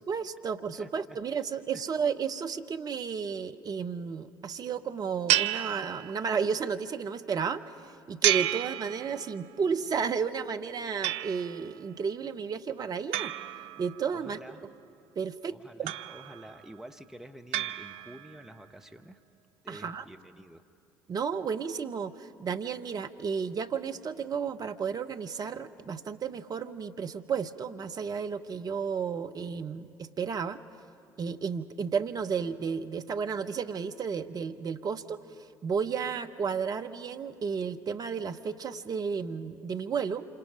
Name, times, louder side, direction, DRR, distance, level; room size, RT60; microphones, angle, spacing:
voice 1, 0.0-13.3 13.8-14.7 15.2-15.9 19.7-20.0 21.1-30.6 31.2-40.3, right 6 dB, 35° right, 9 dB, 0.9 m, -33 dB
voice 2, 0.7-1.4 1.7-1.8 14.1-14.6 15.5-19.2 19.6-20.6, right 1 dB, 5° right, 6 dB, 1.0 m, -49 dB
sound 1, 5.3-6.5 8.2-9.5 11.0-11.7 13.1-14.3 15.9-16.6 17.5-18.4, right 13 dB, 60° right, 0.5 m, -31 dB
27.0 x 25.5 x 5.1 m, 2.4 s
figure-of-eight pair, 55°, 11 cm